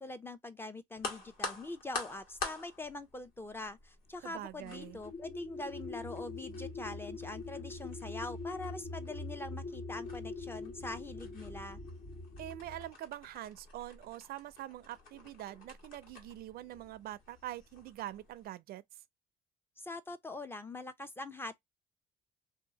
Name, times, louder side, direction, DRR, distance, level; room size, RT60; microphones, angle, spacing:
voice 1, 0.0-11.8 19.8-21.6, left 2 dB, 15° left, 0.4 m, -43 dB
sound 1, 0.9-18.5, left 3 dB, 55° left, 1.5 m, -48 dB
voice 2, 4.2-5.0 12.4-18.8, right 14 dB, 65° right, 0.4 m, -44 dB
sound 2, 4.6-12.9, left 3 dB, 80° left, 1.7 m, -43 dB
2.8 x 2.4 x 2.6 m
cardioid pair, 110°, 17 cm